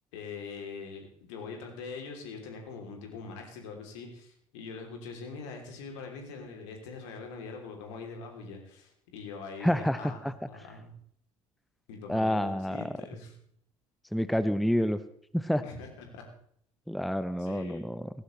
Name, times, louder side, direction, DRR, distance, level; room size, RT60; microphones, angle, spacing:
voice 1, 0.1-10.2 10.5-10.9 11.9-13.3 15.6-16.2 17.4-17.9, left 4 dB, 65° left, 3 dB, 3.2 m, -43 dB
voice 2, 9.6-10.3 12.1-12.9 14.1-15.0 15.3-15.6 16.9-18.1, equal, ahead, 13 dB, 0.7 m, -28 dB
18.0 x 16.0 x 3.2 m, 0.66 s
figure-of-eight pair, 55°, 16 cm